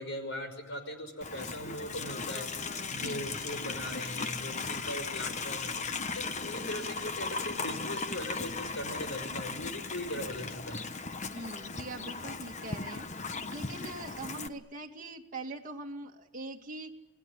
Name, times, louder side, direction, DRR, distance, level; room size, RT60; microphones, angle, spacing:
voice 1, 0.0-2.5 2.9-5.7 6.1-10.8, left 1 dB, 65° left, 7 dB, 5.7 m, -39 dB
Livestock farm animals working animals, 1.2-14.5, left 4 dB, 35° left, 1.1 m, -37 dB
voice 2, 2.9-3.4 11.3-13.1 13.5-17.0, right 2 dB, 40° right, 1 dB, 2.4 m, -42 dB
28.0 x 19.5 x 10.0 m, 1.0 s
head